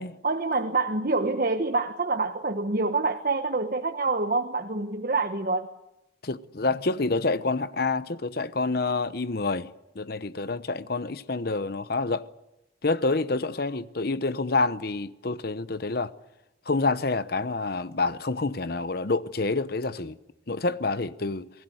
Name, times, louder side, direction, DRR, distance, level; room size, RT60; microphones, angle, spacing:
voice 1, 0.2-5.7, right 3 dB, 45° right, 1.2 m, -26 dB
voice 2, 6.2-12.2 12.8-16.1 16.7-20.2 20.5-21.5, left 3 dB, 55° left, 0.9 m, -28 dB
28.0 x 19.5 x 7.9 m
head